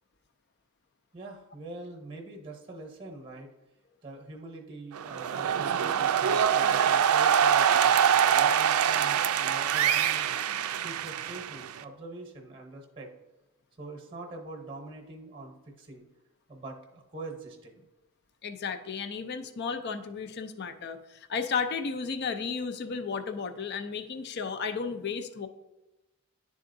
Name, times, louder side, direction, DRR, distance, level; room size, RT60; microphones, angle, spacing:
voice 1, 1.1-3.5 4.0-7.9 8.3-10.4 10.8-13.1 13.8-16.0 16.5-17.9, right 2 dB, 25° right, 2 dB, 0.8 m, -44 dB
sound 1, 4.9-11.8, right 8 dB, 85° right, 0.4 m, -24 dB
voice 2, 18.4-25.5, left 5 dB, 50° left, 9 dB, 0.4 m, -33 dB
10.5 x 3.7 x 2.6 m, 1.1 s
head